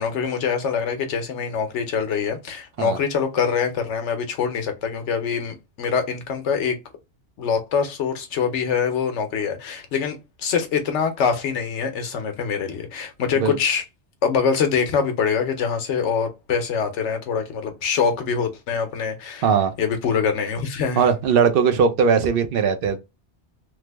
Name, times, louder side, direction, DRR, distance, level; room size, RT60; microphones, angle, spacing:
voice 1, 0.0-6.8 7.4-13.8 14.2-19.5 19.8-21.0, left 6 dB, 80° left, 1.0 m, -24 dB
voice 2, 19.4-19.7 21.0-23.0, right 6 dB, 60° right, 0.7 m, -19 dB
3.2 x 2.0 x 3.3 m
omnidirectional pair, 1.2 m